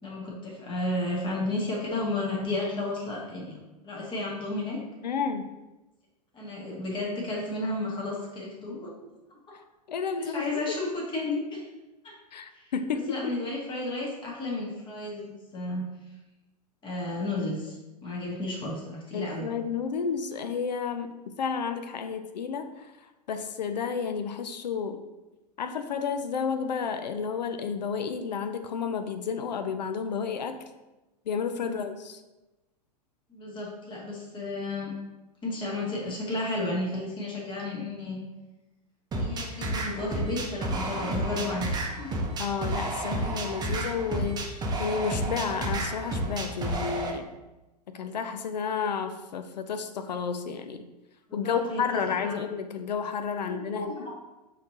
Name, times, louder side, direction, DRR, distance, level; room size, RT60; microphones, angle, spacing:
voice 1, 0.0-3.6 3.8-4.8 6.3-9.1 10.2-11.6 12.0-12.1 12.5-12.7 13.1-15.9 16.8-19.5 31.6-31.8 33.3-34.9 35.4-38.2 39.2-42.2 51.3-52.4 53.5-54.1, left 2 dB, 25° left, -4 dB, 1.5 m, -33 dB
voice 2, 5.0-5.5 9.9-10.6 12.3-13.4 19.1-25.0 25.6-30.6 31.3-32.2 42.4-47.3 47.9-50.8 51.3-54.1, left 6 dB, 85° left, 7 dB, 0.4 m, -31 dB
sound 1, 39.1-47.1, right 1 dB, 20° right, 0.7 m, -31 dB
5.7 x 3.2 x 2.8 m, 1.0 s
hypercardioid pair, 105°, 21 cm